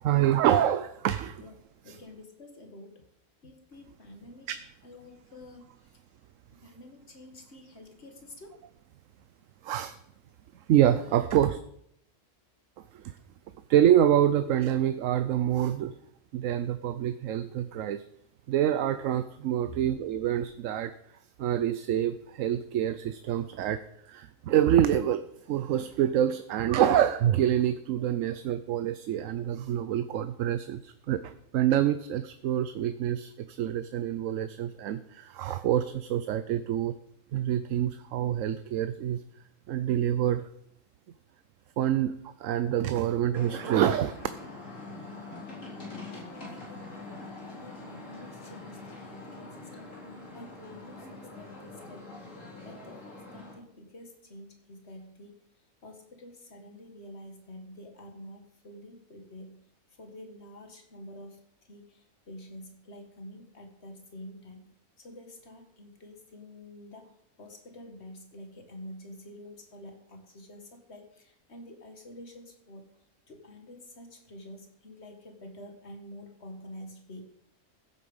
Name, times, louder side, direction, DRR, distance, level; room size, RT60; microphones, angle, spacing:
voice 1, 0.0-1.4 1.9-2.0 4.5-4.6 9.6-9.9 10.7-11.6 13.7-15.9 16.3-18.0 18.5-20.9 21.4-23.8 24.1-36.9 37.3-39.2 39.7-40.4 41.8-42.1 42.4-44.2, right 11 dB, 75° right, 12 dB, 1.0 m, -26 dB
voice 2, 1.8-3.0 3.4-4.5 4.8-5.9 6.6-8.6 19.6-19.9 28.2-28.4 46.1-50.0 50.3-52.1 52.6-55.3 55.8-59.7 60.0-61.4 61.7-67.1 67.4-72.9 73.3-77.3, left 1 dB, 55° left, 4 dB, 2.1 m, -48 dB
sound 1, 43.3-53.5, left 2 dB, 70° left, 4.2 m, -44 dB
15.0 x 8.4 x 5.5 m, 0.72 s
omnidirectional pair, 1.4 m